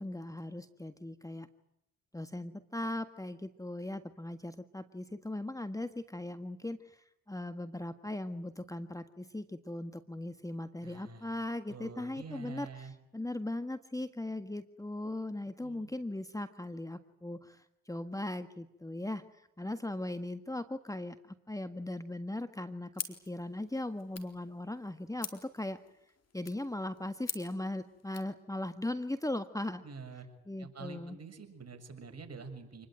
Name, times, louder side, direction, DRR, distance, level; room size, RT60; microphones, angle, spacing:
voice 1, 0.0-1.5 2.1-25.8 26.3-29.8 30.5-31.2, left 1 dB, 10° left, 9 dB, 1.6 m, -39 dB
voice 2, 10.8-11.3 11.7-12.9 15.6-15.9 29.8-30.3 30.6-32.9, right 4 dB, 45° right, 6 dB, 7.1 m, -47 dB
sound 1, 22.9-28.3, left 6 dB, 45° left, 4.2 m, -46 dB
27.5 x 21.0 x 9.1 m, 0.85 s
hypercardioid pair, 50°, 35 cm